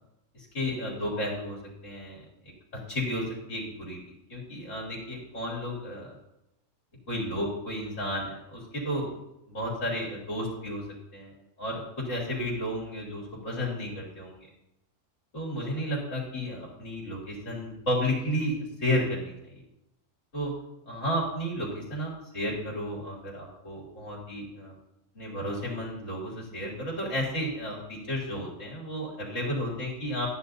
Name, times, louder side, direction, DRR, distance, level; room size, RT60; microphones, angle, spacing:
voice 1, 0.3-1.6 1.8-2.2 2.9-6.1 7.1-9.2 9.5-10.8 11.1-11.3 11.6-14.5 15.3-19.6 20.3-20.5 20.9-24.7 25.1-30.3, equal, 55° left, -4 dB, 3.1 m, -32 dB
12.5 x 9.7 x 2.7 m, 0.88 s
omnidirectional pair, 1.6 m